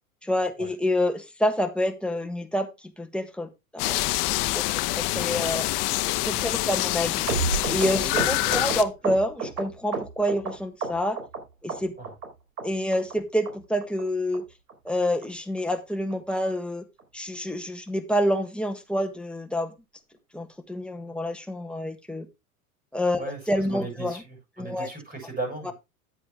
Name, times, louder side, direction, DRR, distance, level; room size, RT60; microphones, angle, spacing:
voice 1, 0.2-2.7 3.0-5.6 6.2-7.3 7.7-11.2 11.6-11.9 12.6-14.4 14.8-16.8 17.1-19.7 20.3-22.3 22.9-24.2 24.6-24.9, left 1 dB, ahead, 1.5 m, -28 dB
sound 1, 3.8-8.8, left 18 dB, 50° left, 0.9 m, -26 dB
voice 2, 6.1-6.7 8.0-8.7 12.0-12.1 23.2-25.7, right 3 dB, 20° right, 7.2 m, -38 dB
sound 2, 7.3-10.5 10.8-11.4 11.7-12.3 12.6-12.7 12.9-13.2 13.5-13.6 13.8-14.0 14.3-14.4 14.7-14.9 15.2-15.3 15.6-15.8 16.1-16.2 16.5-16.7 17.0-17.1, right 5 dB, 85° right, 4.3 m, -30 dB
10.0 x 8.3 x 3.5 m
hypercardioid pair, 105°, 44 cm